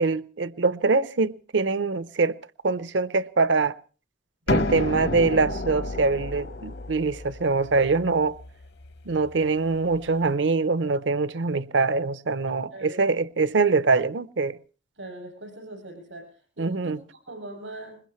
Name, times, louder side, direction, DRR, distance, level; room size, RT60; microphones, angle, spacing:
voice 1, 0.0-2.4 2.6-3.7 4.5-8.4 9.1-14.6 16.6-17.0, right 4 dB, 70° right, 0.7 m, -24 dB
sound 1, 4.5-10.1, left 2 dB, 65° left, 1.0 m, -31 dB
voice 2, 12.7-13.0 15.0-18.0, right 2 dB, 90° right, 7.5 m, -41 dB
21.5 x 21.0 x 3.1 m
head